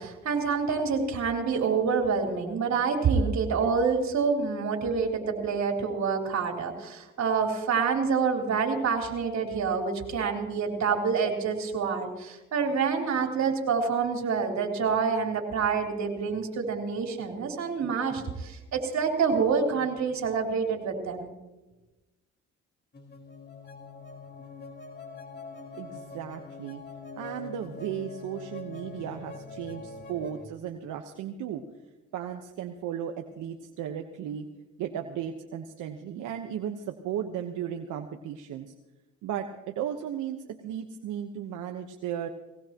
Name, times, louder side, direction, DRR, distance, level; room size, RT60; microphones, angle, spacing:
voice 1, 0.0-21.3, right 5 dB, 65° right, 1 dB, 3.8 m, -27 dB
sound 1, 22.9-30.4, left 3 dB, 35° left, 4.4 m, -43 dB
voice 2, 25.7-26.8 27.2-31.6 32.1-34.5 34.8-38.7 39.2-42.3, right 9 dB, 85° right, 4 dB, 1.2 m, -35 dB
20.0 x 18.5 x 3.0 m, 1.1 s
cardioid pair, 90°, 30 cm